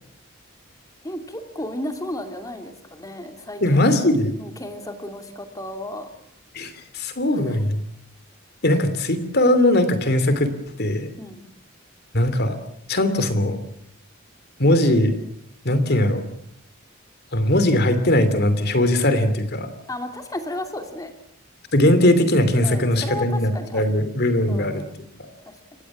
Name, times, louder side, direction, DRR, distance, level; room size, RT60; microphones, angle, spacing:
voice 1, 1.0-4.0 4.4-6.1 7.3-7.6 11.2-11.4 19.9-21.1 22.6-23.9 24.5-24.9 25.5-25.6, left 1 dB, 15° left, 6 dB, 2.8 m, -34 dB
voice 2, 3.6-4.3 6.5-7.8 8.6-10.5 10.8-11.1 12.1-12.6 12.9-13.6 14.6-15.1 15.6-16.2 17.3-19.7 21.7-24.8 25.2-25.3, left 1 dB, 50° left, 11 dB, 2.9 m, -19 dB
29.5 x 16.0 x 7.3 m, 0.70 s
head